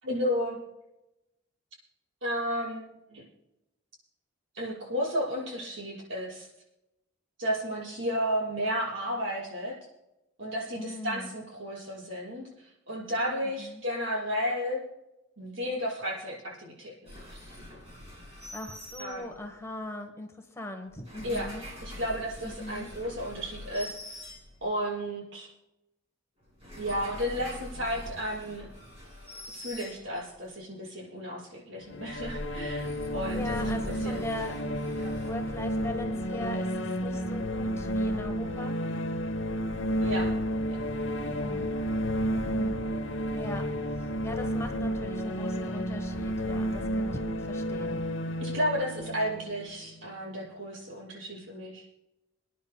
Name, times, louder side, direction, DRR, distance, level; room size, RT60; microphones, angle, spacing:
voice 1, 0.0-0.6 2.2-3.2 4.5-6.5 7.4-9.8 10.4-12.5 12.9-14.8 15.4-17.4 19.0-19.2 21.2-21.5 21.8-23.9 24.6-25.5 26.8-28.7 29.5-34.3 35.0-35.2 40.0-40.3 48.4-51.8, equal, 70° right, -6 dB, 5.7 m, -33 dB
voice 2, 10.8-11.3 13.6-13.8 18.5-21.7 22.4-22.9 33.3-34.6 35.2-38.8 41.2-41.7 42.3-42.8 43.3-43.6 44.0-48.0, left 1 dB, 15° left, 5 dB, 1.0 m, -40 dB
sound 1, 17.1-19.6 20.9-24.9 26.4-30.5 32.0-36.1, left 1 dB, 30° right, 5.1 m, -44 dB
sound 2, 31.9-50.5, equal, 70° left, 0.9 m, -31 dB
29.5 x 10.0 x 2.2 m, 0.91 s
head